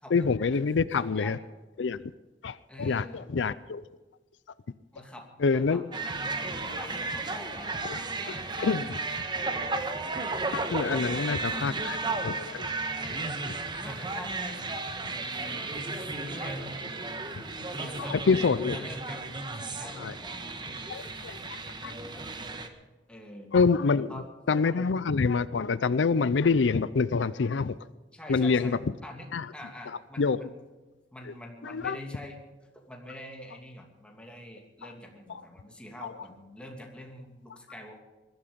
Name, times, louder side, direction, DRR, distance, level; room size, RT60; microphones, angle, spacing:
voice 1, 0.1-1.4 1.8-2.0 2.4-3.8 5.4-5.8 6.7-6.8 7.9-8.0 8.6-9.0 10.5-12.0 12.2-12.7 18.1-18.8 20.0-20.1 20.9-21.9 23.5-24.1 24.5-27.7 28.3-28.8 29.3-29.5 30.2-30.4 31.6-32.0 36.0-36.1, left 4 dB, 80° left, 16 dB, 0.5 m, -26 dB
voice 2, 0.6-1.4 2.7-3.3 4.9-8.9 10.9-11.9 13.7-17.3 17.7-19.2 19.6-21.4 22.0-22.3 23.1-23.5 24.1-24.3 24.7-25.0 28.1-29.3 29.5-30.5 31.1-32.4 32.8-38.0, left 1 dB, 5° left, 1 dB, 2.7 m, -45 dB
sound 1, 5.9-22.7, right 3 dB, 25° right, 1.3 m, -34 dB
21.0 x 12.5 x 5.2 m, 1.2 s
head